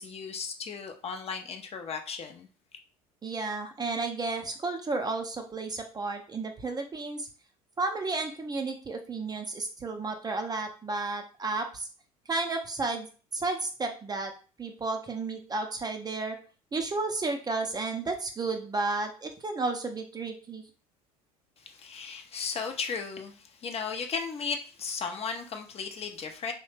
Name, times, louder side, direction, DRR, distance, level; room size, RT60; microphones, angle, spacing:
voice 1, 0.0-2.5 21.6-26.5, left 5 dB, 30° left, 0.5 m, -35 dB
voice 2, 3.2-7.3 7.8-11.9 12.3-13.1 13.3-14.3 14.6-16.4 16.7-20.6, right 3 dB, 20° right, 0.5 m, -32 dB
2.8 x 2.1 x 3.2 m
hypercardioid pair, 65°, 19 cm